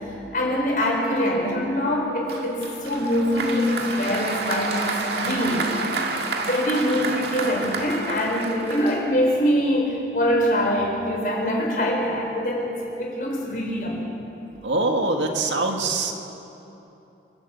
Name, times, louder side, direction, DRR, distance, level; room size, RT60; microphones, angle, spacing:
voice 1, 0.3-5.7 6.4-14.0, equal, 50° left, -1 dB, 4.2 m, -24 dB
Applause, 2.3-9.4, right 3 dB, 65° right, 1.8 m, -29 dB
voice 2, 14.6-16.1, right 2 dB, 90° right, 3 dB, 2.0 m, -23 dB
27.0 x 12.0 x 8.2 m, 3.0 s
head